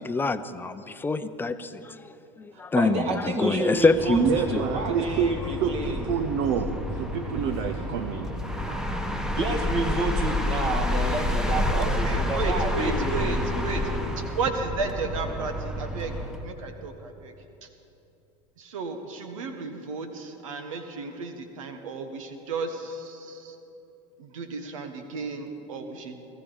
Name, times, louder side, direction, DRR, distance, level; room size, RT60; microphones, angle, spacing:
voice 1, 0.0-2.0 2.4-4.6, left 3 dB, 10° left, 11 dB, 0.6 m, -25 dB
voice 2, 2.5-6.1 9.4-14.1, right 2 dB, 40° right, 2 dB, 2.0 m, -30 dB
sound 1, 3.8-16.5, left 1 dB, 5° right, 1.1 m, -29 dB
voice 3, 4.1-8.9, right 7 dB, 65° right, 7 dB, 0.8 m, -28 dB
voice 4, 11.7-13.4 13.6-13.8 14.4-16.1 16.4-17.3 18.7-23.4 24.3-26.2, right 4 dB, 85° right, 7 dB, 1.2 m, -33 dB
20.0 x 14.0 x 3.9 m, 2.9 s
hypercardioid pair, 100°, 16 cm